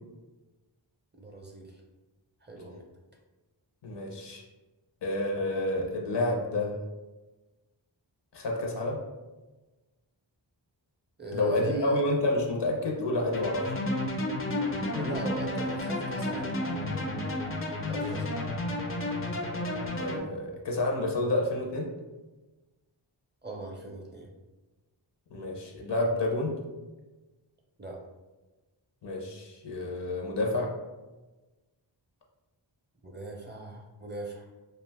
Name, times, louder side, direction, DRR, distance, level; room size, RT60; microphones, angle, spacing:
voice 1, 1.2-1.8 2.4-2.9 11.2-12.0 14.6-16.8 17.8-18.4 23.4-24.3 27.8-28.0 33.0-34.4, right 2 dB, 25° right, -1 dB, 0.5 m, -39 dB
voice 2, 3.8-4.4 5.0-6.8 8.3-9.0 11.3-13.9 17.9-18.0 20.0-21.9 25.3-26.6 29.0-30.8, left 2 dB, 70° left, 0 dB, 0.6 m, -29 dB
sound 1, 13.3-20.2, left 1 dB, 30° left, 0.4 m, -32 dB
2.4 x 2.3 x 3.4 m, 1.2 s
wide cardioid pair, 70°, 45 cm